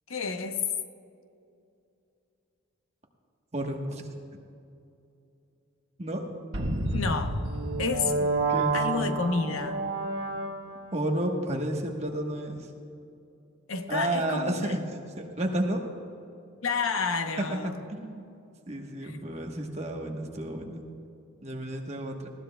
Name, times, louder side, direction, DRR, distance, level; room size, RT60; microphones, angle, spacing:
voice 1, 0.1-0.6 6.9-7.4 7.8-8.2 8.7-9.8 13.7-14.7 16.6-17.8 19.0-19.2, left 4 dB, 75° left, 0.8 m, -30 dB
voice 2, 3.5-4.0 6.0-6.3 7.8-8.8 10.9-12.7 13.9-14.8 15.2-15.9 18.0-18.2 18.7-20.9 21.4-22.3, right 1 dB, 30° right, 1.1 m, -31 dB
sound 1, 6.5-11.0, right 2 dB, 70° right, 1.2 m, -29 dB
19.5 x 15.5 x 2.2 m
head